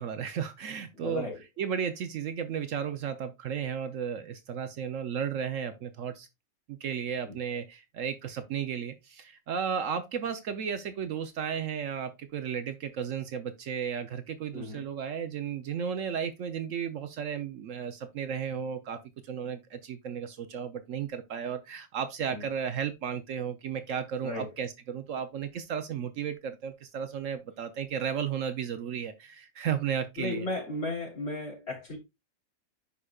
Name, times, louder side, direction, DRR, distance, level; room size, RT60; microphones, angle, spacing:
voice 1, 0.0-1.3 1.6-6.3 6.7-19.0 19.2-30.5, right 7 dB, 65° right, 1.0 m, -34 dB
voice 2, 1.0-1.4 7.3-7.4 14.5-14.8 22.3-22.4 24.2-24.5 30.2-32.0, left 2 dB, 45° left, 3.6 m, -35 dB
11.0 x 5.0 x 2.3 m
omnidirectional pair, 1.5 m